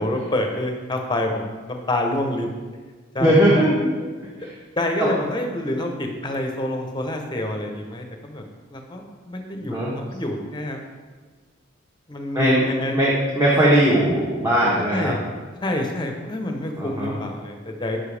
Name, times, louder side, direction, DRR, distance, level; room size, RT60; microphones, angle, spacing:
voice 1, 0.0-2.5 3.1-3.7 4.8-8.4 8.7-10.8 12.1-13.0 14.9-15.2 15.6-18.0, left 1 dB, 20° left, 3 dB, 0.9 m, -27 dB
voice 2, 3.2-3.9 4.2-4.5 5.0-5.1 9.6-9.9 12.3-15.1 16.8-17.1, right 1 dB, 15° right, -7 dB, 1.3 m, -19 dB
9.9 x 5.7 x 3.4 m, 1.4 s
head